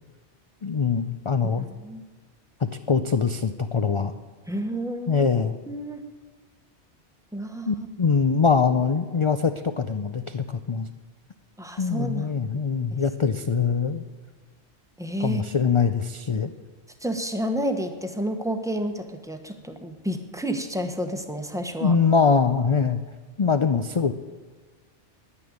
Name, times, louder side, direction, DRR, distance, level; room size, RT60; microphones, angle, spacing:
voice 1, 0.6-1.7 2.6-4.1 5.1-5.6 7.7-10.9 11.8-14.0 15.2-16.5 21.8-23.0 23.4-24.1, left 5 dB, 50° left, 9 dB, 0.3 m, -23 dB
voice 2, 1.6-2.0 4.5-5.3 5.7-6.0 7.3-7.9 11.6-12.6 12.9-13.0 15.0-15.4 17.0-21.9, equal, 5° right, 6 dB, 0.9 m, -30 dB
10.5 x 9.9 x 9.4 m, 1.4 s
omnidirectional pair, 1.2 m